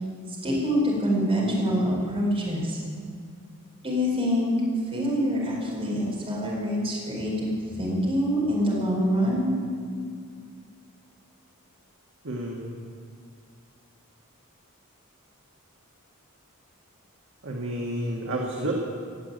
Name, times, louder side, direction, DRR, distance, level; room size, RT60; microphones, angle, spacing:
voice 1, 0.4-2.8 3.8-4.5 4.9-9.5, equal, 25° right, -5 dB, 4.5 m, -25 dB
voice 2, 12.2-12.7 17.4-18.7, right 1 dB, 60° right, -1 dB, 1.6 m, -30 dB
17.0 x 7.8 x 9.2 m, 2.2 s
head